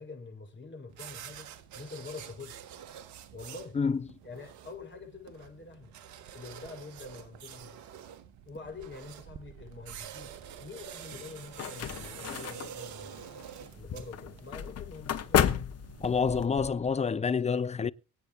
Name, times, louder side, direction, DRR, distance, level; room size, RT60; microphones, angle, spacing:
voice 1, 0.0-1.5 1.7-2.6 3.3-3.8 4.2-6.0 6.3-7.8 8.4-13.3 13.7-15.7, left 3 dB, 40° left, 6.3 m, -46 dB
sound 1, 0.9-14.7, right 9 dB, 70° right, 1.3 m, -47 dB
sound 2, 8.2-17.0, right 7 dB, 50° right, 1.4 m, -52 dB
sound 3, 11.1-16.5, left 9 dB, 55° left, 1.2 m, -32 dB
voice 2, 16.0-17.9, left 5 dB, 20° left, 0.6 m, -27 dB
24.5 x 8.4 x 3.2 m
hypercardioid pair, 45°, 30 cm